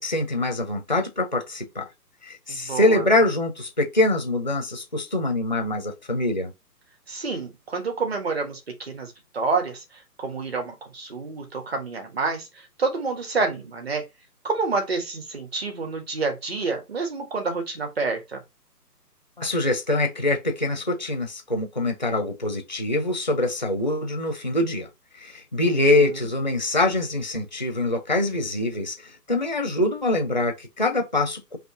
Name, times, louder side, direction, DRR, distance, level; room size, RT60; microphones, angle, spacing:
voice 1, 0.0-1.9 2.2-6.5 19.4-24.9 25.2-31.6, left 2 dB, 30° left, 0.5 m, -24 dB
voice 2, 2.5-3.0 7.1-9.8 10.2-12.5 12.8-14.0 14.4-18.4 25.7-26.1, right 4 dB, 40° right, 1.5 m, -28 dB
4.0 x 2.8 x 3.5 m
figure-of-eight pair, 145°, 49 cm